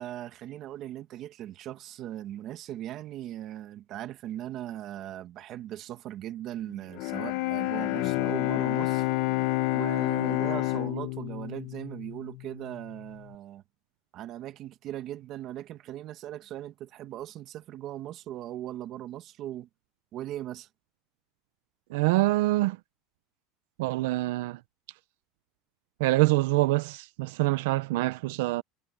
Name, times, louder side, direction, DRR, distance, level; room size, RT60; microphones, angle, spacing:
voice 1, 0.0-9.1 9.7-13.6 14.1-19.7 20.1-20.7, right 12 dB, 40° right, 1.6 m, -39 dB
Bowed string instrument, 6.9-12.9, left 19 dB, 55° left, 1.1 m, -29 dB
voice 2, 21.9-22.8 23.8-24.6 26.0-28.6, right 20 dB, 80° right, 0.7 m, -25 dB
cardioid pair, 165°, 0 cm